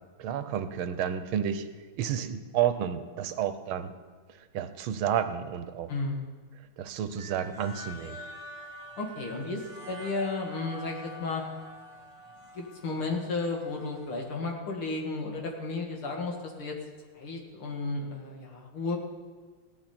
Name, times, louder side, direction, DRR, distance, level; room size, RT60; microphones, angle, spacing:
voice 1, 0.2-1.7 2.0-3.9 4.5-5.9 6.8-8.2, right 9 dB, 85° right, 10 dB, 1.6 m, -30 dB
voice 2, 5.9-6.3 9.0-11.4 12.5-16.8 17.1-19.0, left 3 dB, 85° left, 1 dB, 2.7 m, -33 dB
sound 1, 7.2-14.2, equal, 30° right, 0.5 m, -46 dB
16.5 x 11.5 x 4.4 m, 1.4 s
omnidirectional pair, 2.3 m